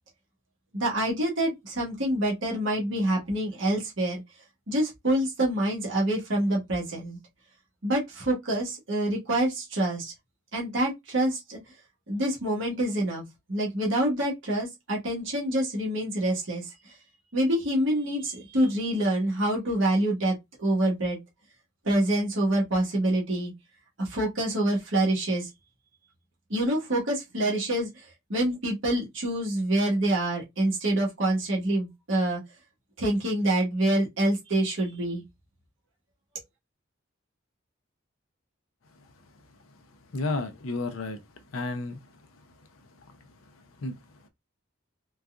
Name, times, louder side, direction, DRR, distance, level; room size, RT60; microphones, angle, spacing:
voice 1, 0.7-4.2 4.7-7.2 7.8-10.1 10.5-11.6 12.1-13.2 13.5-16.9 17.3-21.2 21.8-23.5 24.0-25.5 26.5-28.0 28.3-32.4 33.0-35.2, right 1 dB, 65° right, 1.3 m, -26 dB
voice 2, 40.1-41.2 41.5-42.0 43.8-44.0, left 3 dB, 80° left, 0.5 m, -31 dB
3.9 x 2.4 x 2.3 m
head